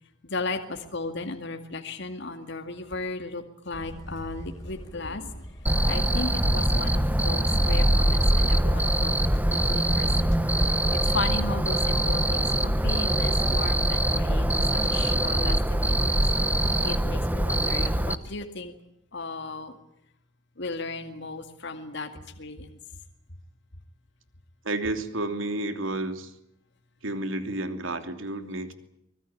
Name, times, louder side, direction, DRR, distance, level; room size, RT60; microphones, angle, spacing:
voice 1, 0.2-5.3 5.8-9.4 9.7-10.3 11.0-14.5 14.7-16.2 16.8-18.7 19.1-19.7 20.6-22.8, left 3 dB, 65° left, 5 dB, 2.2 m, -35 dB
sound 1, 3.7-9.7, equal, 20° left, 5.0 m, -41 dB
Cricket, 5.7-18.2, right 1 dB, 10° right, 1.1 m, -23 dB
voice 2, 24.6-26.3 27.0-28.7, right 2 dB, 80° right, 8 dB, 3.0 m, -31 dB
25.0 x 20.0 x 8.5 m, 0.78 s
head